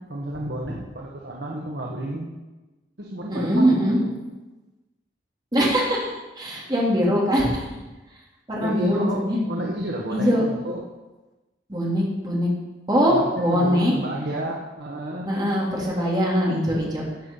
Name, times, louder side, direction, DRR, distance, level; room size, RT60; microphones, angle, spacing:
voice 1, 0.1-2.3 3.0-4.1 8.6-10.8 13.1-15.3, right 1 dB, 65° right, -2 dB, 1.5 m, -31 dB
voice 2, 3.3-4.0 5.5-7.6 8.5-9.4 10.1-10.5 11.7-12.5 12.9-13.9 15.3-17.0, equal, 25° right, -4 dB, 3.5 m, -22 dB
15.0 x 7.3 x 5.7 m, 1.1 s
head